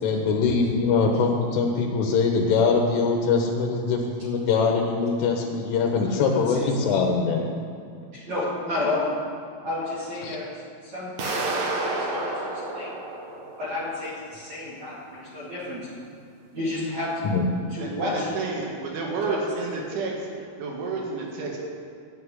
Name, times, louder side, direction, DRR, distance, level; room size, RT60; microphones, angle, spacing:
voice 1, 0.0-7.4 10.2-10.4 17.2-17.4, left 4 dB, 90° left, 1 dB, 3.6 m, -23 dB
voice 2, 6.0-7.0 8.1-9.1 9.6-11.4 11.8-12.3 12.7-12.9 13.6-15.8 16.5-17.3 17.7-18.3 19.3-19.8, left 2 dB, 45° right, -10 dB, 3.0 m, -31 dB
sound 1, 11.2-14.0, right 2 dB, 60° right, 1.9 m, -30 dB
voice 3, 17.8-18.1 18.4-20.1 20.6-21.6, right 4 dB, 75° right, -2 dB, 4.1 m, -30 dB
14.0 x 5.8 x 9.6 m, 2.4 s
omnidirectional pair, 5.5 m